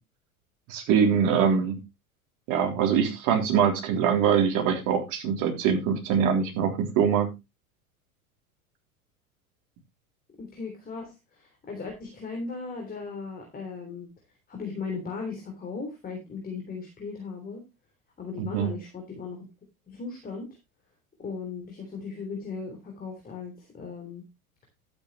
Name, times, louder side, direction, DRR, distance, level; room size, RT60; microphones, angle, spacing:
voice 1, 0.7-1.8 2.5-7.3 18.4-18.7, right 7 dB, 45° right, 3 dB, 3.6 m, -23 dB
voice 2, 10.4-14.1 14.5-17.6 18.2-19.5 19.9-20.5 21.2-24.2, left 4 dB, 20° left, 2 dB, 3.4 m, -37 dB
12.0 x 9.0 x 3.2 m, 0.24 s
figure-of-eight pair, 85°, 43 cm